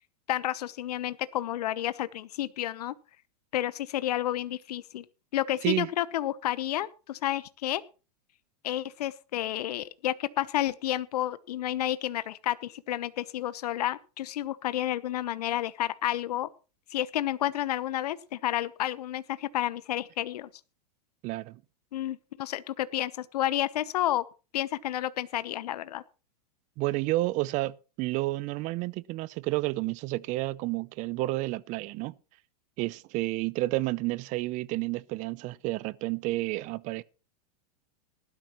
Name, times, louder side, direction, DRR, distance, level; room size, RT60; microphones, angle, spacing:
voice 1, 0.3-2.9 3.5-5.0 5.3-7.8 8.6-16.5 16.9-20.5 21.9-24.2 24.5-26.0, left 13 dB, 75° left, 1.0 m, -30 dB
voice 2, 21.2-21.6 26.8-32.1 32.8-37.0, right 19 dB, 40° right, 0.6 m, -30 dB
19.0 x 12.0 x 3.1 m
hypercardioid pair, 125°, 20 cm